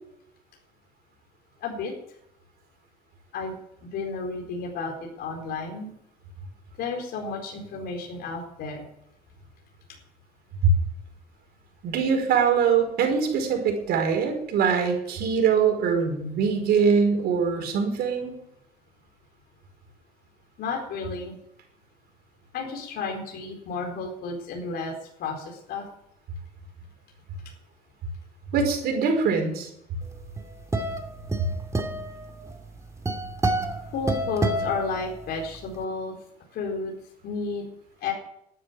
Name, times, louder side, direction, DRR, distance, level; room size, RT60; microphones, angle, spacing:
voice 1, 1.6-1.9 3.3-3.6 3.8-5.9 6.8-8.8 16.8-16.9 20.6-21.4 22.5-24.9 25.2-25.8 33.9-36.1 36.5-36.9 37.2-37.6 38.0-38.1, left 4 dB, 70° left, 1 dB, 4.3 m, -32 dB
voice 2, 11.8-18.4 28.5-29.7, right 6 dB, 70° right, 3 dB, 5.2 m, -23 dB
sound 1, 30.1-35.6, right 2 dB, 20° right, 2.4 m, -29 dB
13.0 x 9.8 x 9.2 m, 0.76 s
cardioid pair, 110°, 17 cm